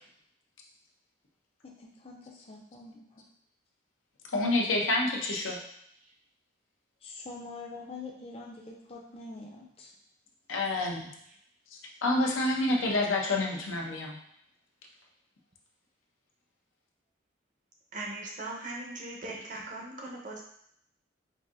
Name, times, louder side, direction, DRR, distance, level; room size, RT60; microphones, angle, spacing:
voice 1, 1.8-3.0 7.0-9.9, left 3 dB, 30° left, 0 dB, 0.5 m, -44 dB
voice 2, 4.3-5.6 10.5-11.1 12.0-14.2, left 2 dB, 85° left, 0 dB, 0.7 m, -28 dB
voice 3, 17.9-20.4, right 2 dB, 40° right, -1 dB, 0.7 m, -39 dB
4.8 x 2.6 x 2.5 m, 0.70 s
head